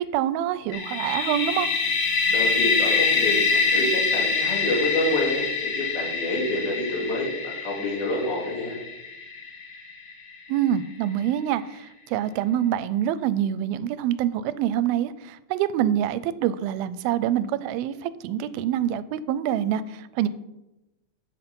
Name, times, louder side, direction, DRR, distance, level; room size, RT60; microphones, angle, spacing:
voice 1, 0.0-1.7 10.5-20.3, right 11 dB, 90° right, 16 dB, 2.4 m, -26 dB
sound 1, 0.7-10.4, left 4 dB, 60° left, 2.4 m, -25 dB
voice 2, 2.3-8.8, left 1 dB, 80° left, -1 dB, 4.3 m, -28 dB
11.5 x 5.6 x 5.3 m, 0.93 s
omnidirectional pair, 4.2 m